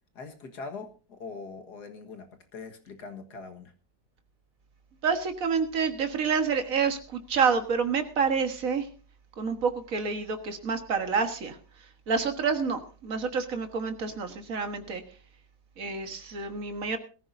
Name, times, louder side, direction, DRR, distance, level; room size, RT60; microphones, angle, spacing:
voice 1, 0.2-2.3 2.5-3.7, left 4 dB, 70° left, 7 dB, 2.1 m, -42 dB
voice 2, 5.0-8.9 9.4-11.6 12.1-15.0 15.8-17.0, right 5 dB, 55° right, 7 dB, 1.9 m, -28 dB
21.0 x 14.5 x 2.7 m, 0.36 s
omnidirectional pair, 1.8 m